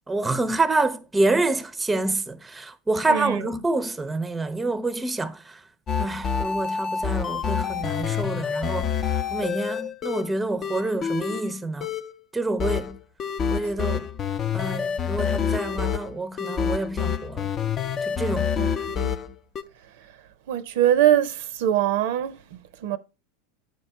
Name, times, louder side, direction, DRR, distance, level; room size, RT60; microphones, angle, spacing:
voice 1, 0.1-5.6 6.0-11.9 12.3-13.0 13.5-14.1 14.5-17.5 18.0-18.5, right 2 dB, 10° right, 0.6 m, -27 dB
sound 1, 5.9-10.3 10.6-11.6 11.8-12.1 12.6-19.6, left 7 dB, 35° left, 0.6 m, -27 dB
voice 2, 20.5-23.0, right 11 dB, 70° right, 0.6 m, -23 dB
8.3 x 4.6 x 4.5 m
hypercardioid pair, 100°, 0 cm